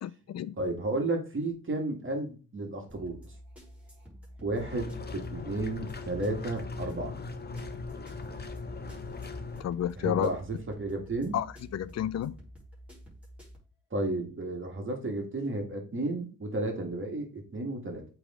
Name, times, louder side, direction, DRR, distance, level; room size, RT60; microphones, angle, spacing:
voice 1, 0.0-0.5 9.6-10.3 11.3-11.5 11.7-12.4, left 10 dB, 50° left, 0.5 m, -30 dB
voice 2, 0.6-3.3 4.4-7.2 10.0-11.4 13.9-18.1, right 2 dB, 35° right, 2.1 m, -33 dB
sound 1, 2.9-13.6, equal, 5° right, 3.8 m, -50 dB
sound 2, 4.6-9.6, left 3 dB, 30° left, 0.9 m, -39 dB
8.2 x 3.6 x 3.7 m
cardioid pair, 85°, 34 cm